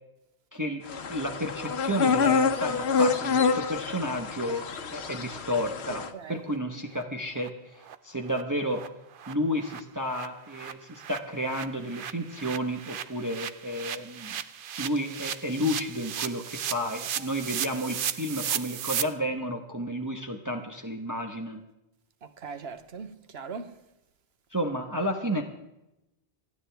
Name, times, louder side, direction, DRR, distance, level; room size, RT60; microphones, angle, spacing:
voice 1, 0.5-0.8 1.1-6.0 6.3-7.7 8.0-8.8 9.3-14.4 14.8-21.6 24.5-25.4, equal, 20° right, 1.2 m, -31 dB
sound 1, 0.9-6.1, left 5 dB, 90° left, 1.2 m, -27 dB
voice 2, 5.9-6.4 17.2-17.3 22.2-23.8, right 5 dB, 75° right, 1.3 m, -40 dB
sound 2, 6.1-6.2 6.5-6.6 6.9-7.0 7.4-7.5 7.8-8.0 8.3-8.4 8.7-8.9 9.1-19.0, right 9 dB, 60° right, 0.8 m, -36 dB
28.5 x 9.6 x 3.5 m
omnidirectional pair, 1.1 m